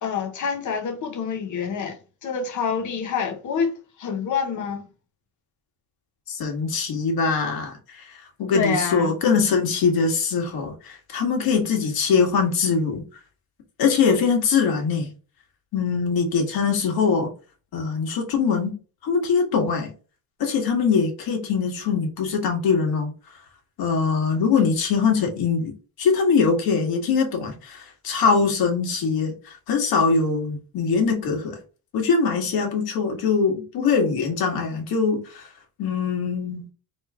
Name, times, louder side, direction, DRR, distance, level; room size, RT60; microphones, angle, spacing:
voice 1, 0.0-4.9 8.5-9.1, left 6 dB, 55° left, 1.2 m, -27 dB
voice 2, 6.3-13.0 13.8-15.1 15.7-17.3 17.7-18.8 19.0-19.9 20.4-23.1 23.8-25.7 26.0-31.6 31.9-35.5 35.8-36.7, left 5 dB, 75° left, 1.8 m, -22 dB
4.4 x 3.2 x 3.5 m
cardioid pair, 160°, 37 cm